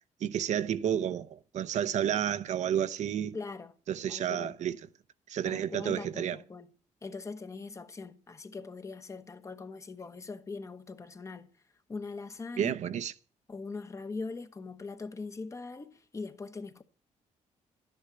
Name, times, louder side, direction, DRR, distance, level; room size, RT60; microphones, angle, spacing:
voice 1, 0.2-3.4 3.9-4.7 5.3-6.4 12.6-13.1, right 9 dB, 65° right, 0.8 m, -31 dB
voice 2, 3.3-3.7 4.1-4.6 5.4-6.7 7.0-11.5 11.9-13.0 13.5-16.8, left 4 dB, 25° left, 1.1 m, -41 dB
13.0 x 10.5 x 6.8 m
cardioid pair, 155°, 13 cm